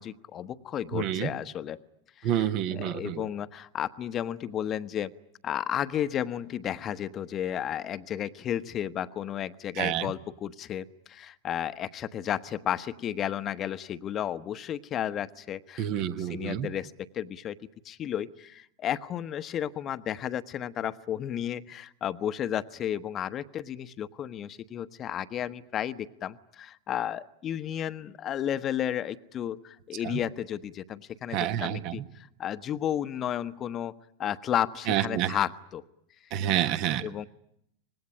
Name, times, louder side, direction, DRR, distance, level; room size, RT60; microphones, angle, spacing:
voice 1, 0.0-1.8 2.2-2.5 2.7-5.1 5.4-15.9 16.2-17.6 17.8-33.9 34.2-35.8 37.0-37.3, left 10 dB, 30° left, 13 dB, 1.1 m, -33 dB
voice 2, 0.9-1.3 2.2-3.3 9.8-10.1 15.8-16.7 30.0-30.2 31.3-32.0 34.9-35.4 36.3-37.1, right 11 dB, 45° right, 11 dB, 1.4 m, -28 dB
25.5 x 20.5 x 9.9 m, 0.74 s
figure-of-eight pair, 90°, 0 cm